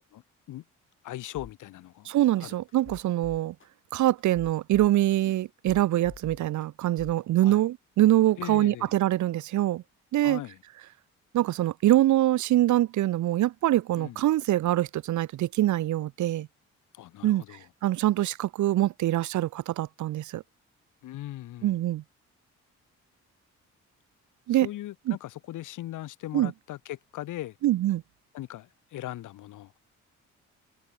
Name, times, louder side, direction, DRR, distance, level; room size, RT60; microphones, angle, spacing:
voice 1, 1.0-2.1 2.4-2.6 7.4-7.6 8.4-8.9 10.2-10.6 14.0-14.2 16.9-17.7 21.0-21.8 24.5-27.6 28.3-29.7, left 14 dB, 85° left, 4.5 m, -39 dB
sound 1, 1.3-1.5 2.1-2.2 2.7-3.7 4.2-5.3 5.7-6.7 7.0-7.2, left 6 dB, 40° left, 7.7 m, -47 dB
voice 2, 2.1-3.5 3.9-9.8 10.1-10.4 11.3-16.5 17.2-17.4 17.8-20.4 21.6-22.0 24.5-24.7 25.1-25.2 26.3-26.5 27.6-28.0, right 14 dB, 75° right, 1.0 m, -24 dB
cardioid pair, 90°, 30 cm